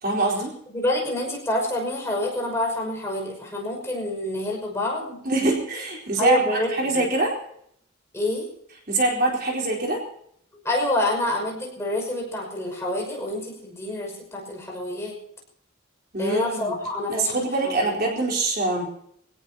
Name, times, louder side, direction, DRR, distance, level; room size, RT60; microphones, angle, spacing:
voice 1, 0.0-0.5 5.2-7.3 8.9-10.0 16.1-16.7 17.1-18.9, right 2 dB, 45° right, -1 dB, 4.1 m, -24 dB
voice 2, 0.7-5.2 6.2-6.7 6.9-7.0 8.1-8.5 10.6-15.2 16.2-17.4 17.6-17.8, left 1 dB, 15° left, -1 dB, 5.8 m, -27 dB
25.0 x 18.0 x 2.9 m, 0.69 s
head